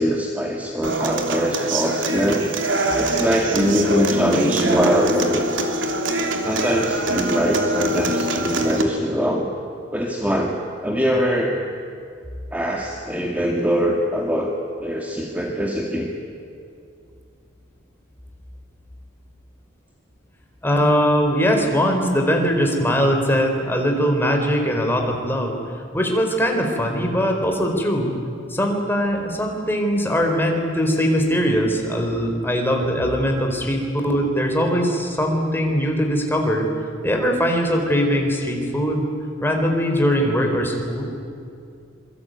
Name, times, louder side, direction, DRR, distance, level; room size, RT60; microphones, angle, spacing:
voice 1, 0.0-2.5 2.9-5.5 6.4-9.5 9.9-11.6 12.5-14.5 14.8-16.1, equal, 10° right, 0 dB, 2.1 m, -22 dB
Human voice / Acoustic guitar, 0.8-8.8, right 1 dB, 80° right, 3.2 m, -24 dB
voice 2, 20.6-25.6 25.9-28.1 28.5-36.7 37.0-39.1 39.4-41.0, equal, 10° left, 2 dB, 4.3 m, -21 dB
27.0 x 23.5 x 9.3 m, 2.4 s
head